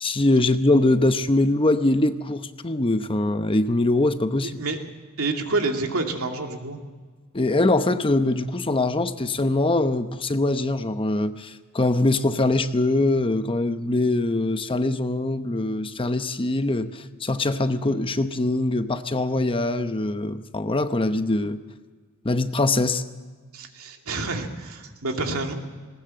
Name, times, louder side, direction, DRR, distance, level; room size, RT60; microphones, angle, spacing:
voice 1, 0.0-4.6 7.3-21.6 22.2-23.0, left 2 dB, 25° left, 10 dB, 0.8 m, -23 dB
voice 2, 5.2-6.8 23.5-25.5, right 3 dB, 85° right, 3 dB, 2.5 m, -28 dB
20.0 x 19.0 x 7.7 m, 1.4 s
head